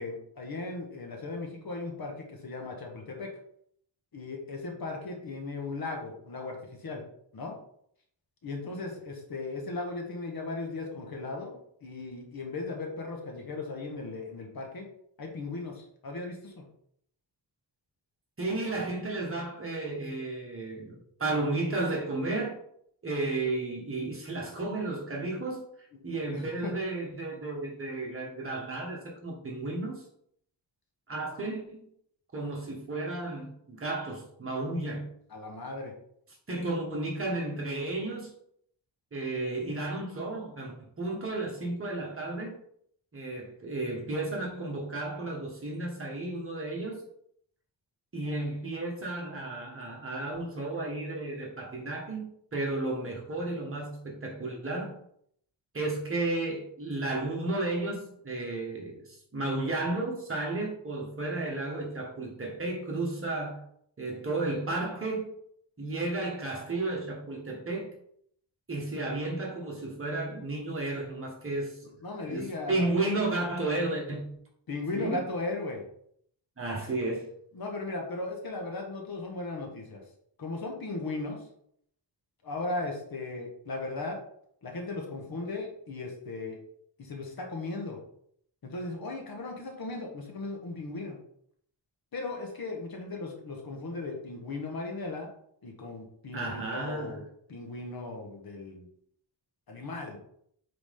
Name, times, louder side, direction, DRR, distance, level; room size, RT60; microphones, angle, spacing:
voice 1, 0.0-3.3 4.1-7.0 7.3-7.5 8.4-14.8 15.2-16.6 26.3-26.7 35.3-35.9 71.8-72.9 74.7-75.8 77.5-80.0 80.4-81.4 82.4-84.2 84.6-86.6 87.0-88.0 88.6-91.2 92.1-95.3 95.6-98.9 99.7-100.2, left 3 dB, 55° left, 1 dB, 1.5 m, -37 dB
voice 2, 18.4-22.6 23.0-25.6 26.0-30.0 31.1-31.9 32.3-35.1 36.5-38.3 39.1-42.6 43.1-47.0 48.1-55.0 55.7-63.6 64.0-65.3 65.8-68.0 68.7-71.8 72.2-74.4 74.9-75.2 76.6-77.3 96.3-97.2, right 2 dB, 30° right, -1 dB, 1.7 m, -33 dB
8.5 x 3.9 x 3.7 m, 0.68 s
wide cardioid pair, 155°, 44 cm